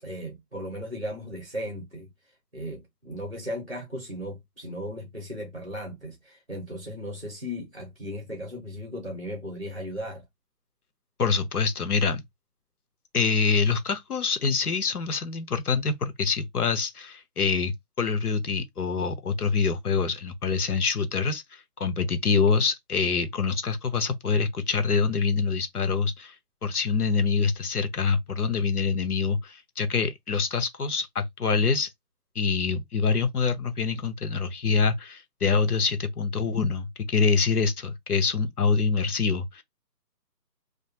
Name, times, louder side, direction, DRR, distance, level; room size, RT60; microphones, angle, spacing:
voice 1, 0.0-2.1 2.5-10.2, equal, 35° right, 0.6 m, -36 dB
voice 2, 11.2-12.2 13.1-26.4 26.6-31.9 32.3-39.6, left 5 dB, 65° left, 0.6 m, -25 dB
2.3 x 2.2 x 2.7 m
hypercardioid pair, 180°, 49 cm